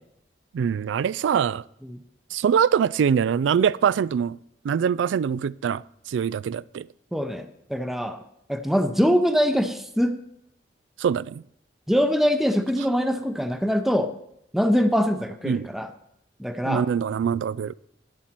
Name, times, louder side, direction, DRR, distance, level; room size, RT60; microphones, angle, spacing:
voice 1, 0.5-1.6 2.3-4.4 4.6-6.9 11.0-11.4 15.5-15.7 16.6-17.8, right 7 dB, 90° right, 0.3 m, -23 dB
voice 2, 7.1-8.2 8.5-10.2 11.9-14.1 14.5-15.9 16.4-16.8, equal, ahead, 0.7 m, -23 dB
11.5 x 9.6 x 4.4 m
head